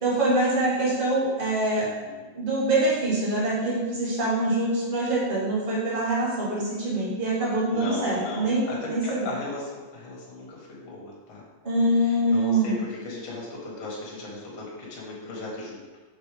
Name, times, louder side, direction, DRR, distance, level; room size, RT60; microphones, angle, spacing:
voice 1, 0.0-1.9 2.3-9.2 11.6-12.8, right 1 dB, 25° right, -6 dB, 1.3 m, -24 dB
voice 2, 1.8-2.2 7.7-11.4 12.0-15.9, left 2 dB, 50° left, -4 dB, 2.1 m, -37 dB
6.2 x 5.5 x 3.4 m, 1.2 s
omnidirectional pair, 3.3 m